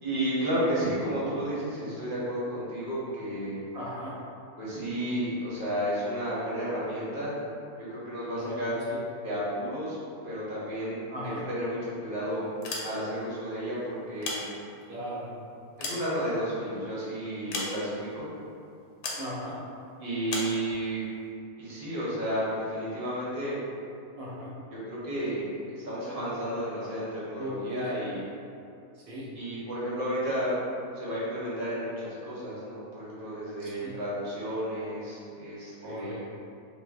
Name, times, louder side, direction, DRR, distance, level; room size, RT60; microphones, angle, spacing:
voice 1, 0.0-3.6 4.6-7.3 7.8-8.8 9.2-10.0 10.2-11.0 11.5-12.5 12.8-14.4 15.8-18.3 20.0-21.0 21.6-23.6 24.7-28.2 29.3-30.5 30.9-36.2, equal, 45° right, -9 dB, 0.8 m, -32 dB
voice 2, 3.7-4.2 8.4-9.0 11.1-11.5 14.9-15.3 19.2-19.6 24.2-24.5 27.4-27.9 28.9-29.3 33.6-33.9 35.8-36.2, equal, 70° right, -6 dB, 1.0 m, -38 dB
sound 1, 12.5-13.3 14.0-15.0 15.5-16.7 17.5-18.1 19.0-19.3 20.3-20.6, left 2 dB, 90° left, 1.1 m, -36 dB
2.5 x 2.2 x 3.3 m, 2.5 s
omnidirectional pair, 1.6 m